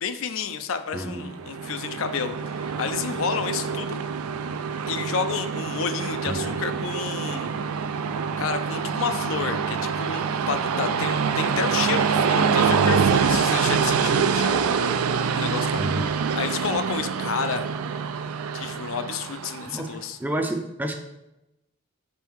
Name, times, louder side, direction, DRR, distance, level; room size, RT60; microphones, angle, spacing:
voice 1, 0.0-4.0 4.9-7.5 8.4-15.8 16.3-17.7 18.5-20.2, left 6 dB, 70° left, 9 dB, 0.5 m, -30 dB
voice 2, 0.9-1.3 6.3-6.5 15.7-16.1 19.7-20.9, right 1 dB, 10° right, 5 dB, 0.4 m, -30 dB
Train, 1.2-19.8, right 6 dB, 90° right, 0.4 m, -25 dB
5.3 x 4.4 x 4.6 m, 0.91 s
head